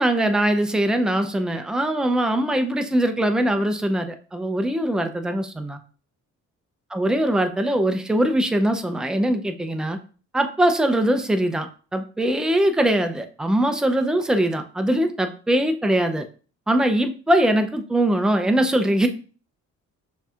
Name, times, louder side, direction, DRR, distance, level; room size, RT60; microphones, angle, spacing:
voice 1, 0.0-5.8 6.9-10.0 10.3-11.7 11.9-16.2 16.7-19.1, right 1 dB, ahead, 6 dB, 0.5 m, -21 dB
6.4 x 2.8 x 2.4 m, 0.38 s
cardioid pair, 90°, 30 cm